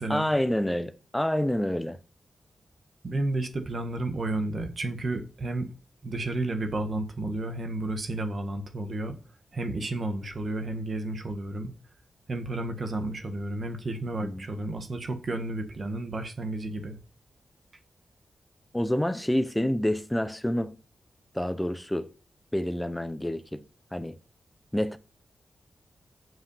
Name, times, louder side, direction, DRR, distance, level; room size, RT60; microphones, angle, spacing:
voice 1, 0.1-2.0 14.2-14.4 18.7-20.7 21.3-22.1 22.5-23.6 23.9-24.2 24.7-25.0, left 1 dB, 5° left, 0.7 m, -28 dB
voice 2, 3.0-5.7 6.0-9.2 9.5-11.7 12.3-17.0, right 2 dB, 40° right, 1.5 m, -32 dB
7.7 x 5.6 x 7.0 m
wide cardioid pair, 150°, 0 cm